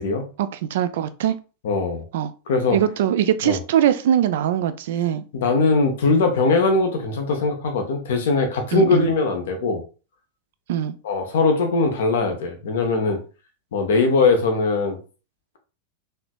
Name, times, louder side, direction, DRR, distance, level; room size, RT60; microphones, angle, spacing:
voice 1, 0.4-1.4 2.1-2.3 2.7-5.2 8.7-9.1 10.7-11.0, right 10 dB, 55° right, 0.3 m, -21 dB
voice 2, 1.6-2.0 2.5-2.8 3.4-3.6 5.3-9.8 11.0-13.2 13.7-15.0, left 3 dB, 60° left, 0.7 m, -20 dB
3.2 x 2.9 x 2.2 m
figure-of-eight pair, 90°, 0 cm